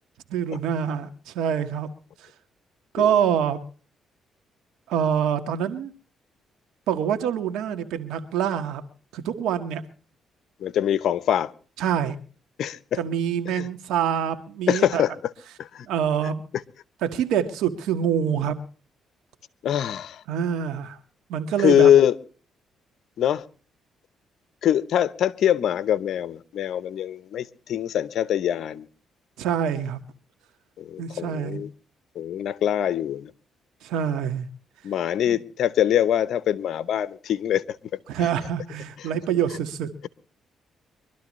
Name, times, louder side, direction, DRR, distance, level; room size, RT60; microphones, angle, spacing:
voice 1, 0.3-1.9 2.2-2.3 2.9-3.6 4.9-5.9 6.9-8.8 9.1-9.8 11.8-12.2 13.0-15.0 15.8-16.4 17.0-18.6 20.3-21.0 21.3-21.9 29.4-30.0 31.0-31.6 33.8-34.5 35.3-35.4 38.1-39.9, right 8 dB, 90° right, 1.6 m, -25 dB
voice 2, 10.6-11.5 12.6-13.0 13.5-13.7 14.7-15.1 15.6-15.9 19.6-20.2 21.6-22.2 23.2-23.4 24.6-28.9 30.8-31.7 32.2-33.3 34.8-37.8, left 10 dB, 70° left, 0.9 m, -23 dB
24.0 x 12.5 x 3.1 m
cardioid pair, 90°, 0 cm